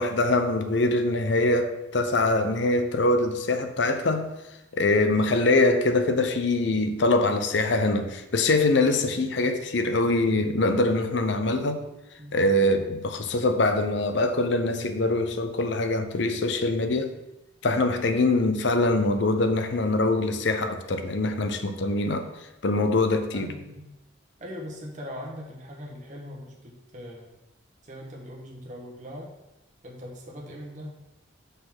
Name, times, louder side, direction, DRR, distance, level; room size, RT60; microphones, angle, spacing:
voice 1, 0.0-4.3 4.7-11.8 12.3-17.1 17.6-22.3 22.6-23.5, left 2 dB, 65° left, 0.7 m, -23 dB
voice 2, 23.3-23.9 24.4-27.3 27.8-29.3 29.8-31.0, equal, 40° right, 1.4 m, -40 dB
5.5 x 4.1 x 6.1 m
head